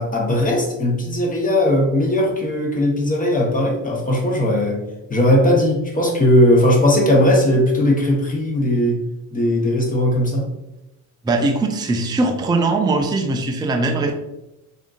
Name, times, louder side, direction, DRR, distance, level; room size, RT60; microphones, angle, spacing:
voice 1, 0.0-4.8 5.1-9.0 9.3-10.5, left 1 dB, 20° left, -1 dB, 1.0 m, -18 dB
voice 2, 11.2-14.1, right 3 dB, 10° right, 4 dB, 0.4 m, -20 dB
3.5 x 2.6 x 2.4 m, 0.92 s
supercardioid pair, 65°, 38 cm